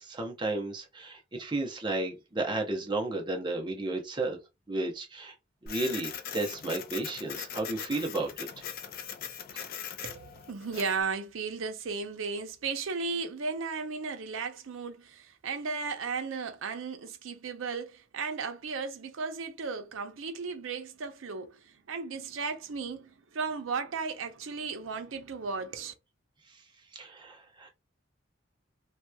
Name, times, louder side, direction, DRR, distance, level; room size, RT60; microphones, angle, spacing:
voice 1, 0.0-4.4 4.7-5.3 5.6-8.3 9.5-9.7 26.9-27.7, right 2 dB, 25° right, 0.7 m, -33 dB
Printer, 5.7-11.0, left 8 dB, 50° left, 0.3 m, -40 dB
voice 2, 10.0-25.9, right 4 dB, 85° right, 0.6 m, -35 dB
2.8 x 2.2 x 2.2 m
head